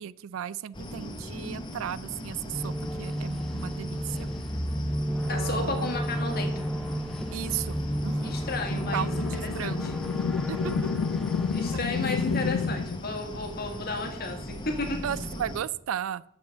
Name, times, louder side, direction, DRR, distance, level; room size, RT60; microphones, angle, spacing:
voice 1, 0.0-4.3 5.3-5.9 7.3-7.8 8.0-8.4 8.7-10.0 10.5-10.8 12.0-12.1 15.0-16.2, right 9 dB, 65° right, 20 dB, 0.3 m, -35 dB
sound 1, 0.7-15.6, left 1 dB, 20° left, 0.9 m, -39 dB
sound 2, 2.5-12.8, equal, ahead, 0.5 m, -32 dB
voice 2, 5.3-6.6 8.2-9.1 9.4-9.9 11.5-15.0, left 3 dB, 45° left, 3 dB, 1.8 m, -33 dB
sound 3, 8.6-13.0, left 6 dB, 85° left, 0.3 m, -30 dB
7.4 x 6.2 x 7.2 m, 0.72 s
head